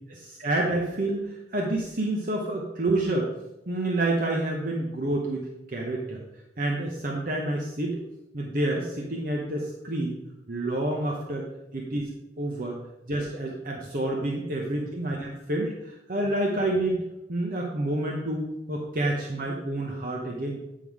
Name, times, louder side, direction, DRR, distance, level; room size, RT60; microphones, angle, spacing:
voice 1, 0.4-3.3 3.7-6.2 6.6-8.0 8.3-10.2 10.5-11.5 11.7-12.0 12.4-12.8 13.1-17.0 17.3-20.6, right 1 dB, 50° right, -1 dB, 0.9 m, -28 dB
9.1 x 3.7 x 4.8 m, 0.93 s
head